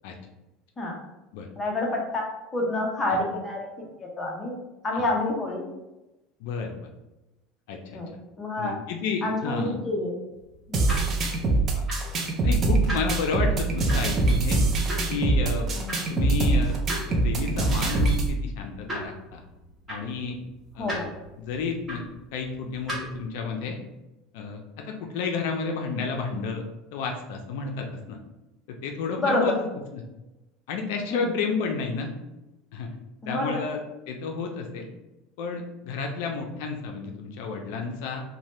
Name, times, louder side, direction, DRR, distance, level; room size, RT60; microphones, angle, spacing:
voice 1, 1.6-2.3 2.5-3.7 4.2-4.6 4.8-5.6 7.9-8.1 8.4-8.8 9.2-10.1 10.7-10.9 15.8-16.1 20.8-21.1 29.2-29.6 31.1-31.3 33.2-33.6, left 2 dB, 20° left, -1 dB, 0.6 m, -28 dB
voice 2, 6.4-6.8 7.7-8.0 8.6-9.7 11.7-11.8 12.4-14.6 15.1-15.7 16.1-16.8 17.1-19.4 19.9-20.4 20.7-21.1 21.4-22.0 22.3-23.8 24.3-26.6 26.9-28.2 28.7-29.7 29.9-30.0 30.7-32.1 32.7-32.9 33.3-33.8 34.1-34.9 35.4-38.2, left 5 dB, 75° left, 3 dB, 0.4 m, -31 dB
sound 1, 10.3-23.3, equal, 15° right, 1.1 m, -40 dB
sound 2, 10.7-18.3, right 3 dB, 35° right, 0.5 m, -24 dB
2.7 x 2.1 x 3.0 m, 0.99 s
supercardioid pair, 140°, 0 cm